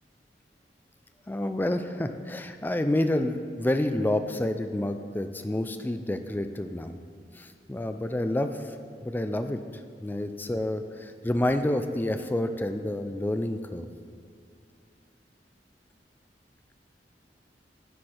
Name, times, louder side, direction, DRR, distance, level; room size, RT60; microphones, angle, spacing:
voice 1, 1.3-7.0 7.3-8.8 9.0-9.6 10.0-13.9, left 1 dB, 10° left, 8 dB, 0.3 m, -29 dB
9.9 x 4.4 x 4.9 m, 2.4 s
head